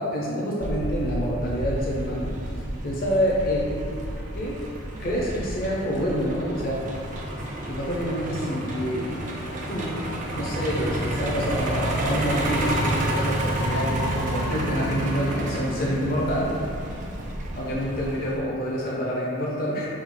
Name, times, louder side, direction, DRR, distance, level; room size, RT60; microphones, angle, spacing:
voice 1, 0.0-2.3 2.8-3.9 4.3-4.6 5.0-6.8 7.7-9.1 9.7-9.9 10.3-16.6 17.5-19.9, equal, 45° left, -5 dB, 0.6 m, -27 dB
Truck, 0.6-18.4, right 1 dB, 40° right, 0.4 m, -30 dB
3.7 x 2.7 x 3.7 m, 2.3 s
head